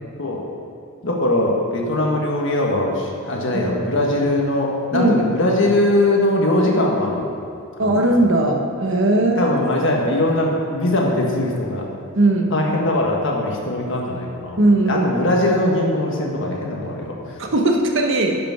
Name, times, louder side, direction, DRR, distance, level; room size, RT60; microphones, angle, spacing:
voice 1, 1.0-7.3 7.8-8.0 9.1-11.8 12.5-14.6 14.9-17.3, left 1 dB, 55° left, -1 dB, 1.5 m, -21 dB
voice 2, 7.8-9.5 12.2-12.5 14.6-15.3 17.4-18.4, right 2 dB, 55° right, 2 dB, 1.0 m, -18 dB
10.0 x 6.0 x 5.8 m, 2.7 s
head